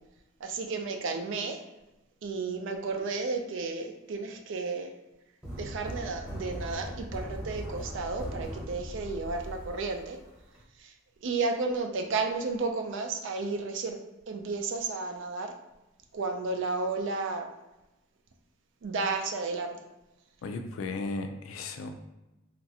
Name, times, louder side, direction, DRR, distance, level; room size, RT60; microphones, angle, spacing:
voice 1, 0.4-1.6 2.2-4.9 5.6-10.2 10.8-10.9 11.2-14.0 14.3-15.5 16.1-17.5 18.8-19.8, right 3 dB, 65° right, 5 dB, 0.4 m, -32 dB
sound 1, 5.4-10.6, equal, 5° right, 0.9 m, -39 dB
voice 2, 20.4-21.9, left 3 dB, 90° left, 6 dB, 0.4 m, -35 dB
3.0 x 2.5 x 2.7 m, 0.99 s
head